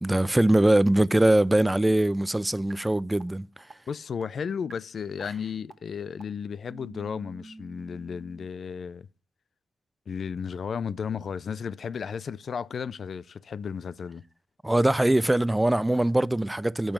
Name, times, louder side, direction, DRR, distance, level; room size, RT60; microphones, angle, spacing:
voice 1, 0.0-3.5 14.6-16.9, right 1 dB, 10° right, 0.4 m, -22 dB
sound 1, 2.7-2.8 3.2-3.3 3.7-3.8 4.2-4.3 4.7-4.8 5.2-5.3 5.7-5.8 6.2-6.3 6.7-8.5, right 2 dB, 40° right, 1.0 m, -46 dB
voice 2, 3.9-9.1 10.1-14.2, left 6 dB, 60° left, 0.4 m, -34 dB
8.6 x 5.4 x 5.9 m
cardioid pair, 70°, 0 cm